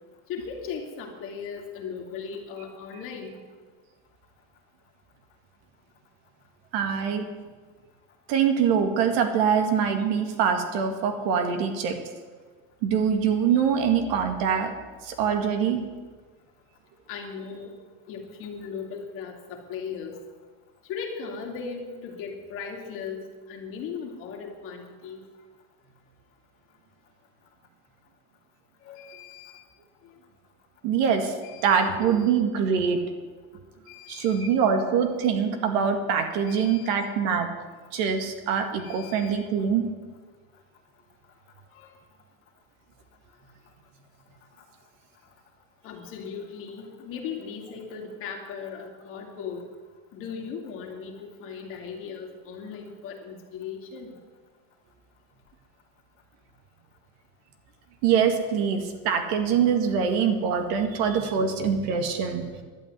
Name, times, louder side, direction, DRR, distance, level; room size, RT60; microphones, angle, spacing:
voice 1, 0.3-3.4 17.1-17.7 18.1-20.2 20.9-25.2 28.8-29.6 31.4-31.9 33.9-34.5 36.5-36.9 38.8-39.4 41.7-41.9 45.8-49.7 50.1-54.2, left 6 dB, 45° left, 2 dB, 2.5 m, -38 dB
voice 2, 6.7-7.3 8.3-12.0 12.8-14.7 15.0-15.8 30.8-31.3 31.6-33.0 34.1-37.5 37.9-39.9 58.0-62.4, right 7 dB, 70° right, 5 dB, 2.1 m, -24 dB
11.5 x 8.7 x 9.5 m, 1.4 s
cardioid pair, 165°, 31 cm